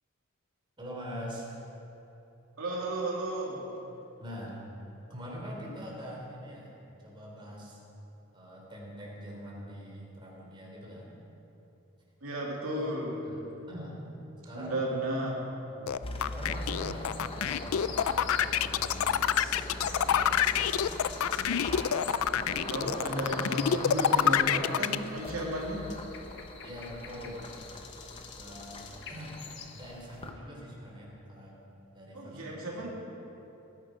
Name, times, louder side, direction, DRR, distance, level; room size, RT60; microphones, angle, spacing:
voice 1, 0.8-1.6 4.2-4.6 5.1-6.8 7.0-7.8 8.3-11.2 13.2-14.0 14.4-14.8 15.7-20.8 26.6-27.5 28.4-29.4 29.7-31.5 31.9-32.9, equal, 25° right, -3 dB, 3.4 m, -44 dB
voice 2, 2.6-3.7 12.2-13.3 14.5-15.3 22.3-25.8 32.1-32.9, right 1 dB, 85° right, -3 dB, 2.4 m, -33 dB
sound 1, 15.9-25.0, left 9 dB, 80° left, 0.4 m, -26 dB
sound 2, 16.0-30.3, left 2 dB, 25° left, 1.0 m, -41 dB
sound 3, 16.5-29.9, left 6 dB, 55° left, 1.3 m, -47 dB
19.0 x 10.5 x 4.9 m, 3.0 s
head